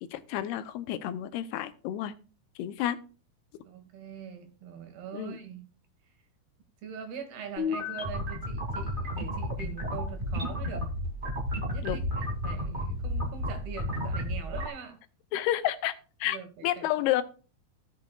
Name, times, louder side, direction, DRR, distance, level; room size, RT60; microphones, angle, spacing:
voice 1, 0.1-2.1 2.6-3.0 5.1-5.4 11.8-12.0 15.3-16.0 16.2-16.4 16.6-17.2, left 13 dB, 85° left, 2.6 m, -30 dB
voice 2, 3.6-5.7 6.8-10.9 11.7-15.0 16.2-16.9, right 6 dB, 75° right, 3.5 m, -43 dB
sound 1, 7.6-14.7, left 1 dB, 15° right, 1.7 m, -32 dB
16.0 x 8.3 x 2.4 m
omnidirectional pair, 4.6 m